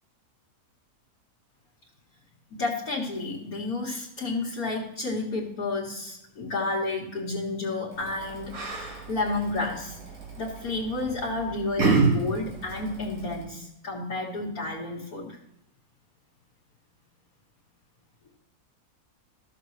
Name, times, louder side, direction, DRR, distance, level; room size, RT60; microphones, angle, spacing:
voice 1, 2.5-8.5 9.1-10.0 10.4-15.4, left 3 dB, 80° left, -6 dB, 1.9 m, -31 dB
Yell, 7.9-13.4, right 4 dB, 75° right, 2.1 m, -30 dB
13.5 x 6.6 x 3.1 m, 0.78 s
omnidirectional pair, 1.5 m